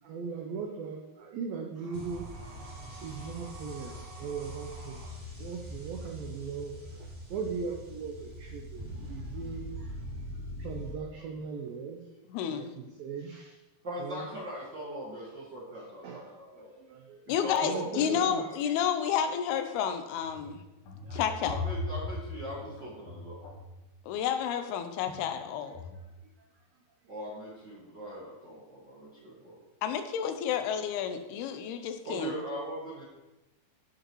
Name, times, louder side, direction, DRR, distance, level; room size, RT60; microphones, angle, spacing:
voice 1, 0.0-2.3 3.0-5.0 5.4-10.0 10.6-12.0 12.4-13.6 14.0-14.3 16.0-18.4 21.0-21.2, right 5 dB, 90° right, 2 dB, 2.0 m, -39 dB
sound 1, 1.7-5.2, right 3 dB, 70° right, 3.5 m, -51 dB
sound 2, 1.9-10.9, equal, 25° right, 1.3 m, -43 dB
voice 2, 12.3-12.7 17.3-20.6 21.1-21.5 24.1-25.8 29.8-32.4, left 8 dB, 80° left, 7 dB, 2.4 m, -30 dB
voice 3, 13.8-16.7 17.3-18.5 21.4-23.4 27.1-29.5 32.0-33.0, equal, 50° right, -7 dB, 1.3 m, -40 dB
sound 3, 20.2-23.8 25.1-25.4 25.7-26.1, left 3 dB, 60° left, 2.5 m, -38 dB
13.0 x 7.9 x 3.1 m, 1.0 s
omnidirectional pair, 5.2 m